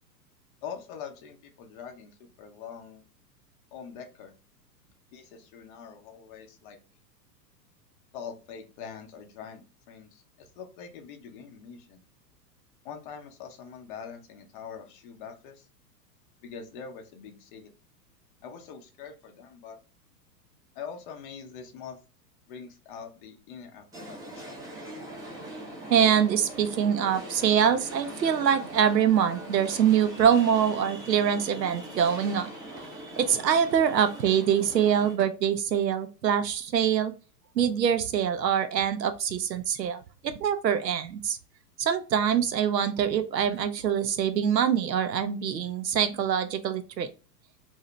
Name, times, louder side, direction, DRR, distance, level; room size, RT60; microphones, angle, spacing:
voice 1, 0.6-3.0 3.7-4.3 5.1-6.8 8.1-12.0 12.8-15.7 16.4-17.7 18.4-19.8 20.7-22.0 22.5-24.9, left 7 dB, 30° left, 4 dB, 0.6 m, -44 dB
sound 1, 23.9-35.1, right 1 dB, 5° right, 0.6 m, -41 dB
voice 2, 25.9-32.5 33.2-37.1 37.6-41.4 41.8-47.1, right 8 dB, 75° right, 10 dB, 0.7 m, -24 dB
2.8 x 2.7 x 3.1 m, 0.34 s
figure-of-eight pair, 100°, 50 cm